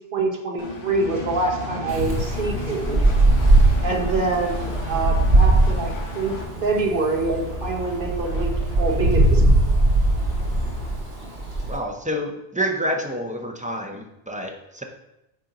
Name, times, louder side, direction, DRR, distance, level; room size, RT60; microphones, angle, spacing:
voice 1, 0.1-3.0 3.8-6.3 6.6-8.5 8.8-9.7, right 3 dB, 55° right, 0 dB, 1.4 m, -25 dB
Engine, 0.6-6.4, left 4 dB, 90° left, 1.4 m, -37 dB
sound 1, 0.9-10.9, left 2 dB, 45° left, 2.9 m, -35 dB
Wind, 1.9-11.8, right 2 dB, 75° right, 1.7 m, -20 dB
voice 2, 11.7-14.8, equal, 10° right, 2 dB, 0.7 m, -28 dB
9.1 x 4.4 x 3.9 m, 0.85 s
omnidirectional pair, 1.1 m